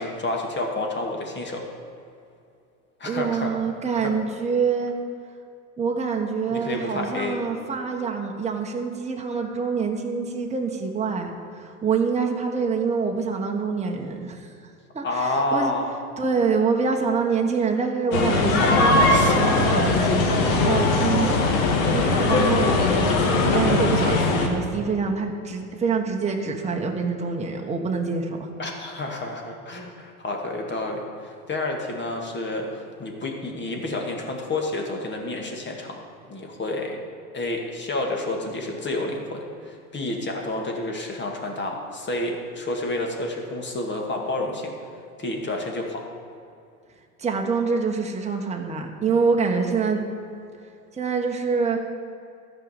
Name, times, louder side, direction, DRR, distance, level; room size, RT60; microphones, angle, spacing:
voice 1, 0.0-1.7 3.0-3.6 4.0-4.1 6.5-7.4 15.0-15.9 19.1-19.3 28.6-36.0 36.3-37.0 37.3-44.7 45.2-46.0, left 2 dB, 25° left, 1 dB, 2.2 m, -29 dB
voice 2, 3.0-4.9 5.8-11.3 11.5-14.5 14.9-15.7 16.2-21.6 21.9-28.5 47.2-50.0 50.9-51.8, right 5 dB, 15° right, 1 dB, 1.4 m, -26 dB
sound 1, 18.1-24.5, left 3 dB, 70° left, 2.0 m, -20 dB
12.5 x 5.4 x 8.9 m, 2.5 s
hypercardioid pair, 95°, 43 cm